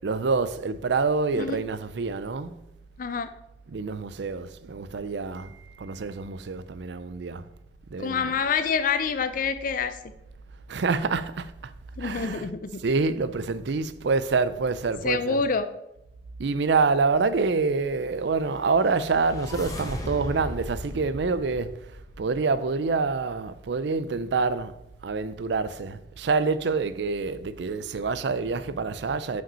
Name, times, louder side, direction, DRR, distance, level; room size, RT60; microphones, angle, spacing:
voice 1, 0.0-2.6 3.7-7.5 7.9-8.3 10.7-11.7 12.0-12.5 12.8-15.5 16.4-24.7 25.0-29.4, right 4 dB, 65° right, 0.5 m, -27 dB
voice 2, 3.0-3.3 8.0-10.0 12.0-12.7 15.0-15.6, left 5 dB, 50° left, 0.4 m, -26 dB
sound 1, 18.5-22.6, left 1 dB, 20° left, 1.1 m, -38 dB
5.9 x 5.1 x 5.5 m
head